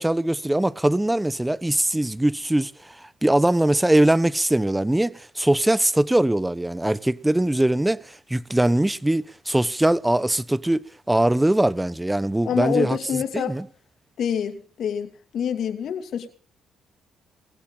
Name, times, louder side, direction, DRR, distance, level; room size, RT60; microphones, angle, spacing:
voice 1, 0.0-13.7, right 1 dB, 10° right, 0.9 m, -22 dB
voice 2, 12.4-13.6 14.2-15.1 15.3-16.3, left 8 dB, 65° left, 2.6 m, -26 dB
21.0 x 16.5 x 3.9 m
cardioid pair, 90°, 0 cm